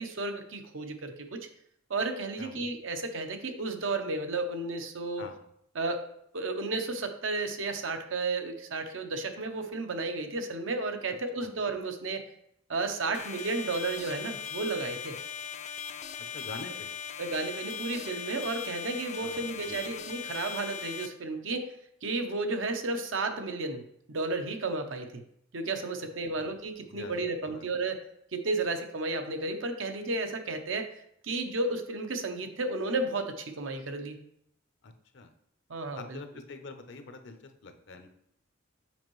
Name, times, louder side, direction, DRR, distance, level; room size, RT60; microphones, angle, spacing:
voice 1, 0.0-1.5 1.9-5.2 5.8-6.0 6.3-12.2 12.7-15.2 17.2-25.2 25.5-28.0 28.3-30.9 31.2-34.2 35.7-36.2, right 3 dB, 75° right, 6 dB, 0.8 m, -33 dB
voice 2, 5.2-5.5 11.4-11.5 16.2-16.9 19.2-20.0 26.4-26.5 26.9-27.1 27.4-27.6 34.8-35.3 35.9-38.1, left 3 dB, 65° left, 7 dB, 0.7 m, -45 dB
sound 1, 13.1-21.1, left 7 dB, 35° left, 0.4 m, -39 dB
7.0 x 5.4 x 3.1 m, 0.73 s
head